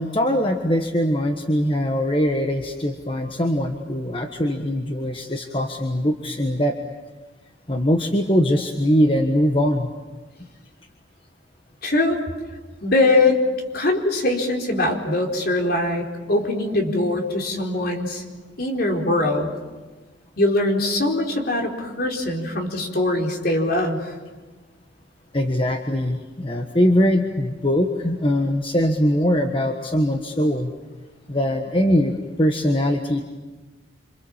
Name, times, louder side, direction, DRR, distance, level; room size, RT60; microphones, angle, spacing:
voice 1, 0.0-6.8 7.7-9.9 25.3-30.7 31.3-33.2, equal, 25° left, 4 dB, 1.4 m, -21 dB
voice 2, 11.8-12.2 12.8-13.4 13.7-18.2 18.6-19.5 20.4-24.1, left 2 dB, 50° left, 1 dB, 4.3 m, -22 dB
27.5 x 27.5 x 7.4 m, 1.3 s
head